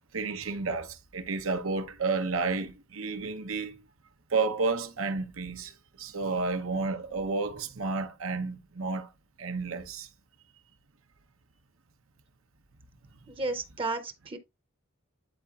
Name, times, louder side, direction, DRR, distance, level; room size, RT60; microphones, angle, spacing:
voice 1, 0.1-3.8 4.3-9.1 9.4-10.1, right 4 dB, 80° right, 0.9 m, -31 dB
voice 2, 13.3-14.4, right 3 dB, 25° right, 0.7 m, -33 dB
11.0 x 4.0 x 2.4 m
head